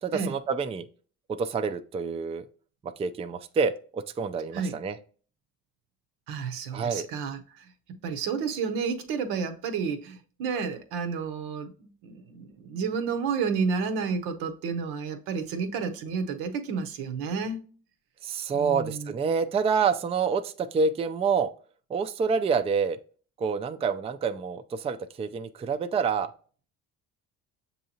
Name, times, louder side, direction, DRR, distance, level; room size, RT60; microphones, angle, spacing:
voice 1, 0.0-0.8 1.4-2.5 2.8-5.0 6.7-7.1 18.2-21.5 21.9-23.0 23.4-26.3, right 5 dB, 15° right, 0.3 m, -27 dB
voice 2, 6.3-7.7 8.0-17.6 18.5-19.1, right 5 dB, 85° right, 0.7 m, -31 dB
6.7 x 2.7 x 2.8 m
supercardioid pair, 65°, 38 cm